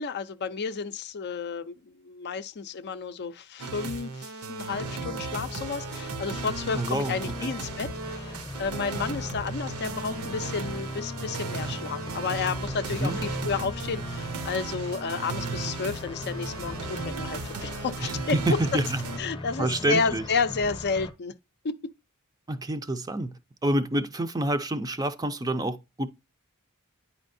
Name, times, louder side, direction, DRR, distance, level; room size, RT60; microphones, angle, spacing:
voice 1, 0.0-18.6 19.2-21.4 21.6-21.9, left 5 dB, 50° left, 0.5 m, -31 dB
sound 1, 3.6-19.2, right 4 dB, 75° right, 0.8 m, -36 dB
sound 2, 4.7-21.1, left 1 dB, 20° left, 0.8 m, -39 dB
voice 2, 6.7-7.1 7.4-7.5 13.0-13.2 18.0-19.0 19.6-20.2 22.5-23.3 23.6-26.1, right 1 dB, 15° right, 0.5 m, -27 dB
9.8 x 4.3 x 2.6 m
head